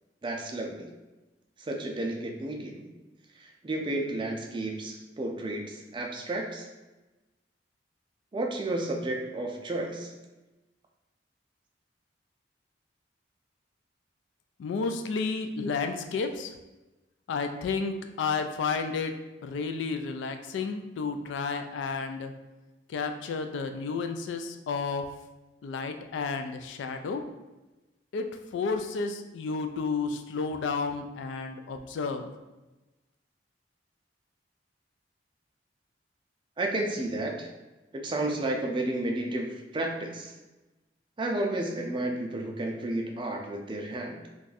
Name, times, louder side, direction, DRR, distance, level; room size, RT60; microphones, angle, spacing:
voice 1, 0.2-0.9 1.6-2.8 3.4-6.7 8.3-10.1 36.6-37.5 37.9-40.3 41.2-44.3, right 2 dB, 25° right, 2 dB, 0.4 m, -32 dB
voice 2, 14.6-16.5 17.3-19.2 19.4-22.3 22.9-25.1 25.6-27.2 28.1-32.3, left 4 dB, 75° left, 7 dB, 0.3 m, -31 dB
2.5 x 2.3 x 3.9 m, 1.1 s
head